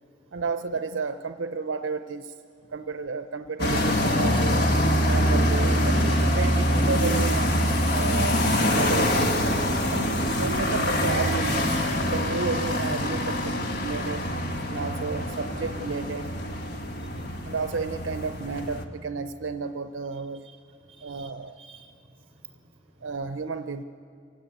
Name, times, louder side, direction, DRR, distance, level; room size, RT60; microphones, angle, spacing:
voice 1, 0.3-2.3 2.7-4.7 5.0-8.4 8.7-9.4 9.9-14.2 14.7-16.3 17.4-20.5 21.0-21.6 23.0-23.8, right 4 dB, 75° right, 8 dB, 0.6 m, -32 dB
sound 1, 3.6-18.8, equal, 55° left, 1.6 m, -24 dB
voice 2, 8.5-8.8 17.0-17.4 20.7-23.1, right 6 dB, 35° right, 3 dB, 4.1 m, -51 dB
27.0 x 16.5 x 9.1 m, 2.7 s
head